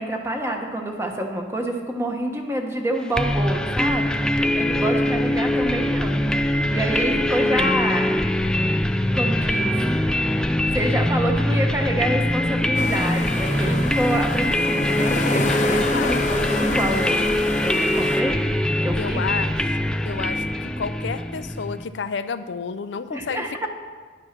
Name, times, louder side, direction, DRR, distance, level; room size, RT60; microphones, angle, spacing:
voice 1, 0.0-8.1 9.1-9.7 10.3-10.4 10.7-17.2 17.6-18.4 18.8-19.2 23.1-23.7, right 1 dB, 15° right, 2 dB, 1.2 m, -27 dB
sound 1, 3.2-21.8, left 1 dB, 5° left, 0.3 m, -22 dB
sound 2, 7.7-13.7, right 1 dB, 75° right, 0.9 m, -42 dB
sound 3, 12.7-18.2, left 3 dB, 40° left, 0.8 m, -29 dB
voice 2, 18.9-19.8 20.1-20.5 20.8-23.7, left 5 dB, 70° left, 11 dB, 0.5 m, -30 dB
10.5 x 9.0 x 5.9 m, 1.5 s
head